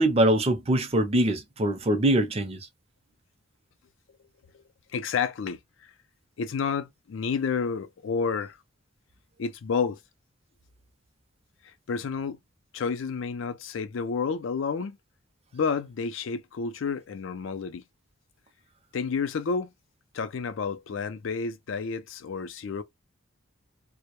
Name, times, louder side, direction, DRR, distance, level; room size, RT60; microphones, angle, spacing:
voice 1, 0.0-2.6, right 1 dB, 30° right, 0.5 m, -23 dB
voice 2, 4.9-5.6 6.4-8.6 9.4-10.0 11.9-12.4 12.7-15.0 15.5-17.8 18.9-19.7 20.1-22.8, left 5 dB, 70° left, 0.4 m, -30 dB
2.1 x 2.1 x 2.9 m
head